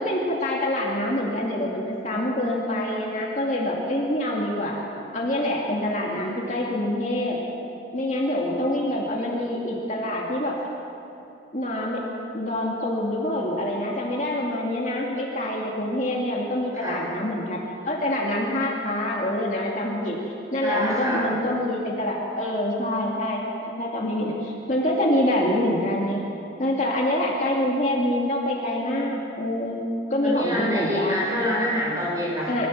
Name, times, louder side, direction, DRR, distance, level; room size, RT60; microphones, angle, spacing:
voice 1, 0.0-4.8 5.1-7.4 7.9-10.6 11.5-12.0 12.3-20.2 20.5-26.2 26.6-29.8 30.1-31.2 32.5-32.7, left 1 dB, 40° left, -2 dB, 2.5 m, -26 dB
voice 2, 20.6-21.4 30.2-32.7, equal, 20° right, -5 dB, 6.6 m, -26 dB
25.0 x 15.5 x 7.3 m, 2.7 s
head